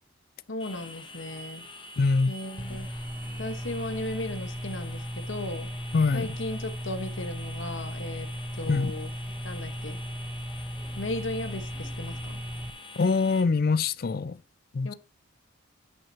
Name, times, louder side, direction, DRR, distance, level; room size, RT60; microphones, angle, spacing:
voice 1, 0.5-1.7 2.3-2.9 3.4-5.7 6.1-8.3 8.5-9.1 9.4-10.0 11.0-12.4 14.8-14.9, left 1 dB, 70° left, 1.2 m, -36 dB
sound 1, 0.6-13.4, left 1 dB, 25° left, 0.8 m, -45 dB
voice 2, 2.0-2.3 2.7-2.8 5.9-6.4 8.7-8.9 13.0-14.4 14.7-14.9, left 4 dB, 45° left, 0.4 m, -24 dB
sound 2, 2.6-12.7, equal, 5° right, 0.5 m, -37 dB
10.5 x 6.2 x 2.8 m
head